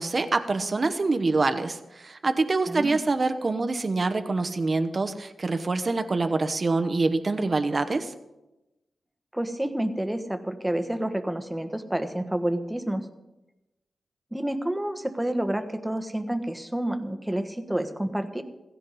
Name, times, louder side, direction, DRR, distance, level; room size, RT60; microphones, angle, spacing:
voice 1, 0.0-8.1, right 3 dB, 40° right, 8 dB, 1.0 m, -25 dB
voice 2, 2.7-3.0 9.3-13.1 14.3-18.4, right 1 dB, 5° right, 8 dB, 1.4 m, -29 dB
16.0 x 16.0 x 4.1 m, 0.99 s
wide cardioid pair, 90°, 0 cm